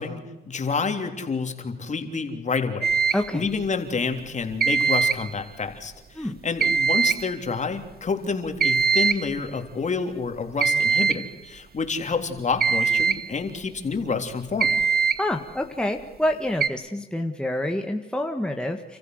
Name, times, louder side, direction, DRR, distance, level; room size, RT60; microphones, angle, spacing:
voice 1, 0.0-2.9 3.3-14.8, left 4 dB, 35° left, 5 dB, 3.5 m, -28 dB
sound 1, 2.8-3.3 4.6-5.3 6.6-7.3 8.6-9.3 10.6-11.3 12.6-13.3 14.6-15.3 16.6-16.7, right 5 dB, 50° right, 1.2 m, -22 dB
voice 2, 3.1-3.4 6.1-6.4 15.2-19.0, left 1 dB, 5° left, 4 dB, 1.7 m, -27 dB
30.0 x 15.0 x 8.0 m, 1.1 s
cardioid pair, 90°, 20 cm